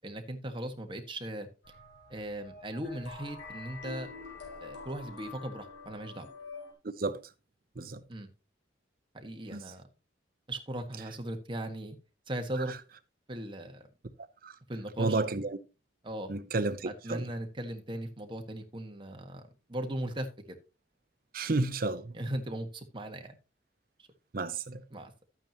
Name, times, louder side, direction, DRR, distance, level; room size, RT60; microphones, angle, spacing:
voice 1, 0.0-1.5 2.1-4.1 4.6-6.3 8.1-8.3 9.1-9.8 10.5-12.0 12.3-12.7 13.3-13.9 14.7-15.2 16.0-16.3 16.8-19.4 19.7-20.6 22.1-23.4 24.9-25.2, right 1 dB, 25° right, 1.6 m, -38 dB
sound 1, 1.6-6.7, left 4 dB, 80° left, 4.7 m, -46 dB
voice 2, 15.0-15.6 16.3-17.3 21.3-22.1 24.3-24.8, right 3 dB, 50° right, 0.7 m, -31 dB
12.0 x 8.9 x 3.0 m
head